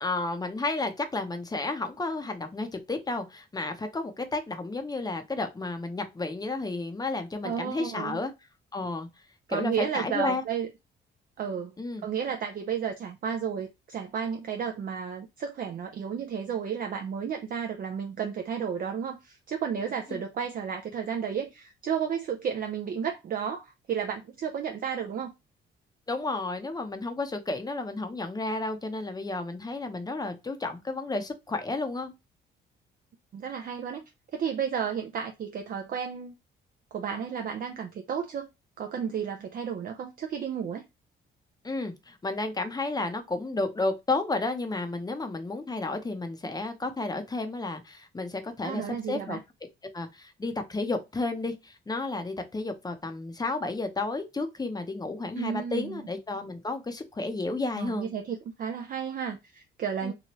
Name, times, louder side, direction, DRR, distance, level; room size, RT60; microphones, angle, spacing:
voice 1, 0.0-8.3 8.7-9.1 9.5-10.4 11.8-12.0 20.1-20.2 26.1-32.1 41.6-49.4 49.9-58.1 60.0-60.1, left 2 dB, 20° left, 0.6 m, -32 dB
voice 2, 7.4-8.2 9.5-10.7 11.4-11.7 12.0-25.3 33.3-34.0 34.3-36.3 36.9-38.5 38.8-40.8 48.6-49.4 55.4-56.0 57.8-60.1, right 7 dB, 45° right, 0.5 m, -32 dB
2.9 x 2.2 x 3.0 m
cardioid pair, 90°, 20 cm